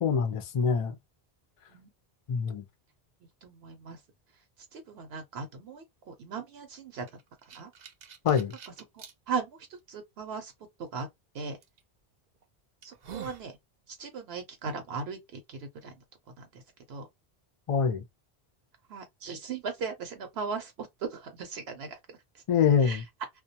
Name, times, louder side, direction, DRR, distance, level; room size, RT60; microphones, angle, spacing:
voice 1, 0.0-1.0 2.3-2.6 8.2-8.5 17.7-18.0 22.5-23.0, left 6 dB, 45° left, 0.4 m, -25 dB
voice 2, 3.2-4.0 4.7-7.1 7.5-7.7 8.9-10.5 10.8-11.1 11.3-11.6 12.8-13.6 13.9-16.0 16.4-16.6 16.9-17.1 18.9-22.4 22.8-23.0, right 5 dB, 75° right, 0.9 m, -38 dB
sound 1, 7.1-9.1 9.8-9.9 11.6-11.8 12.4-12.5 12.8-13.5, right 7 dB, 55° right, 0.5 m, -46 dB
2.2 x 2.2 x 2.6 m
omnidirectional pair, 1.1 m